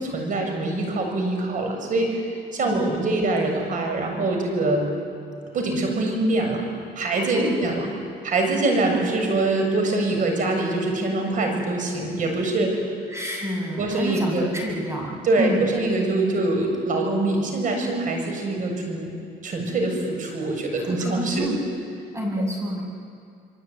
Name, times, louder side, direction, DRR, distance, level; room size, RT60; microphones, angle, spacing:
voice 1, 0.0-2.2 2.5-4.9 5.5-6.6 7.0-7.9 8.2-12.8 13.8-14.5 15.2-19.1 19.4-21.5, right 2 dB, 50° right, 3 dB, 7.4 m, -24 dB
voice 2, 13.1-15.7 20.8-21.6 22.1-22.8, equal, 15° right, 0 dB, 7.5 m, -29 dB
27.0 x 23.0 x 9.5 m, 2.4 s
cardioid pair, 110°, 17 cm